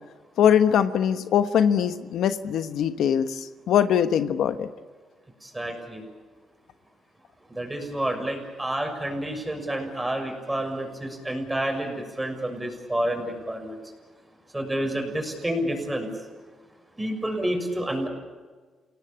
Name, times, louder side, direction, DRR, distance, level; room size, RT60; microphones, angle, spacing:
voice 1, 0.4-4.7, left 9 dB, 75° left, 10 dB, 1.2 m, -22 dB
voice 2, 5.4-6.0 7.5-13.8 14.5-16.1 17.0-18.1, right 1 dB, 10° right, 4 dB, 6.6 m, -29 dB
29.0 x 18.0 x 8.7 m, 1.4 s
cardioid pair, 90°, 0 cm